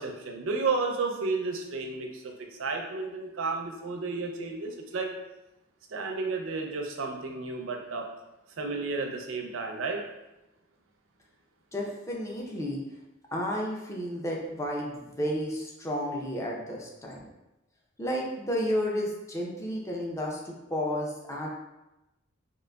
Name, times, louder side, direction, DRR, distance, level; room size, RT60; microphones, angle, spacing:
voice 1, 0.0-5.1 5.9-8.1 8.6-10.0, right 4 dB, 75° right, 2 dB, 0.5 m, -32 dB
voice 2, 11.7-12.8 13.3-17.3 18.0-21.5, equal, 15° left, -2 dB, 0.5 m, -32 dB
3.8 x 2.7 x 2.2 m, 0.97 s
head